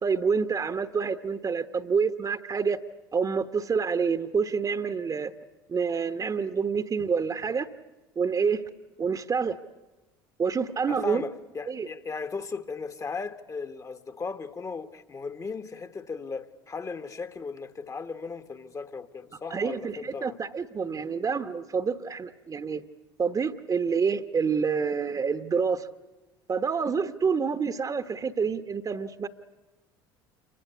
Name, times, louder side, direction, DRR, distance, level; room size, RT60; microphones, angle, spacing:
voice 1, 0.0-2.8 3.1-5.3 5.7-7.7 8.2-8.6 9.0-9.6 10.4-11.2 11.7-11.9 19.5-22.8 23.2-25.9 26.5-29.3, right 5 dB, 30° right, 1.2 m, -27 dB
voice 2, 10.9-20.4, left 4 dB, 25° left, 1.3 m, -37 dB
28.0 x 23.0 x 8.2 m
hypercardioid pair, 65°, 12 cm